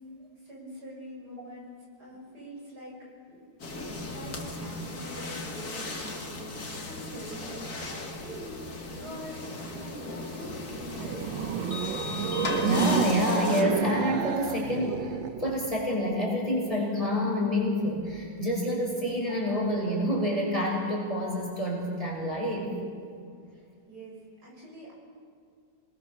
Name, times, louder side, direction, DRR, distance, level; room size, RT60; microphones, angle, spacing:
voice 1, 0.4-1.7 2.0-3.0 3.3-3.4 4.0-8.6 8.9-11.3 23.5-24.9, equal, 55° right, -3 dB, 7.6 m, -44 dB
sound 1, 3.6-13.6, left 2 dB, 50° left, 3.0 m, -36 dB
sound 2, 10.6-15.9, right 10 dB, 80° right, 1.5 m, -31 dB
voice 2, 12.6-22.7, left 1 dB, 15° left, -3 dB, 6.1 m, -28 dB
28.0 x 21.5 x 6.9 m, 2.3 s
omnidirectional pair, 2.0 m